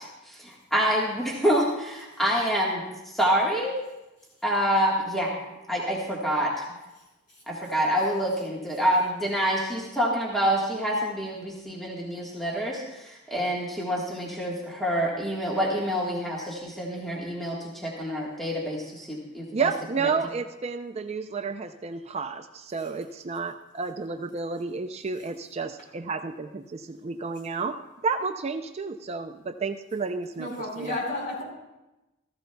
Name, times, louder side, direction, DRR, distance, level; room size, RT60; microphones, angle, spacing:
voice 1, 0.0-3.8 4.4-5.3 5.7-6.6 7.5-19.7, equal, ahead, -4 dB, 1.4 m, -27 dB
voice 2, 19.5-27.8 28.0-30.5 30.8-30.9, right 4 dB, 30° right, 7 dB, 0.4 m, -31 dB
voice 3, 30.4-31.4, left 2 dB, 45° left, -3 dB, 4.6 m, -32 dB
15.0 x 14.5 x 2.2 m, 1.0 s
head